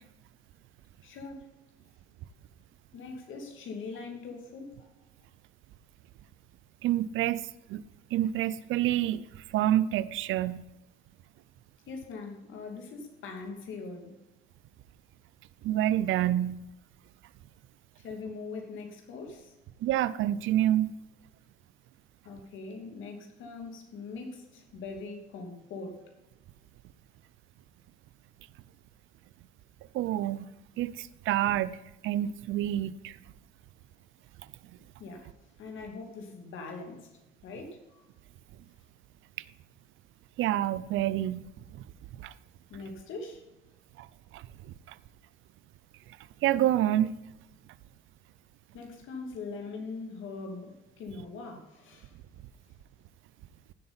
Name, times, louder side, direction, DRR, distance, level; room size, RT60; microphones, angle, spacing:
voice 1, 1.0-1.5 2.9-4.9 11.9-14.2 18.0-19.5 22.2-26.0 35.0-35.3 35.6-37.1 37.4-38.1 42.7-43.4 48.7-52.1, left 4 dB, 80° left, 3 dB, 2.7 m, -42 dB
voice 2, 6.8-7.8 8.1-10.6 15.6-16.6 19.8-20.9 29.9-30.5 30.8-31.8 32.0-33.2 40.4-41.4 41.7-41.8 42.2-42.3 44.0-44.1 44.3-44.4 46.4-47.1, right 13 dB, 85° right, 18 dB, 0.6 m, -27 dB
16.0 x 7.8 x 4.3 m, 0.95 s
cardioid pair, 90°, 20 cm